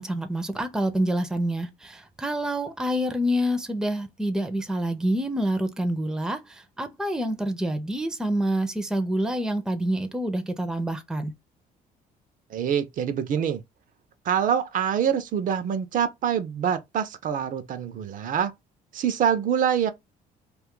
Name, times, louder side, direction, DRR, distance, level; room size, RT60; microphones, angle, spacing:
voice 1, 0.0-11.3, right 1 dB, 5° right, 0.5 m, -27 dB
voice 2, 12.5-13.6 14.3-18.5 18.9-19.9, right 8 dB, 50° right, 0.5 m, -25 dB
2.5 x 2.3 x 3.6 m
cardioid pair, 110°, 17 cm